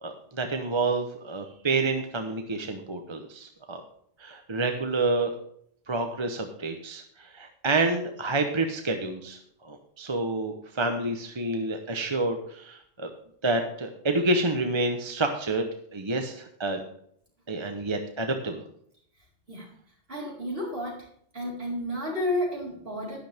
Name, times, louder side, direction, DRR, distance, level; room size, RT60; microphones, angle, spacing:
voice 1, 0.0-3.8 4.2-5.3 5.9-9.4 9.6-13.1 13.4-15.7 15.9-16.8 17.5-18.6, right 2 dB, 25° right, 5 dB, 0.9 m, -28 dB
voice 2, 20.1-21.1 21.3-23.2, left 1 dB, 55° right, -5 dB, 4.7 m, -31 dB
11.5 x 10.5 x 3.5 m, 0.66 s
omnidirectional pair, 1.2 m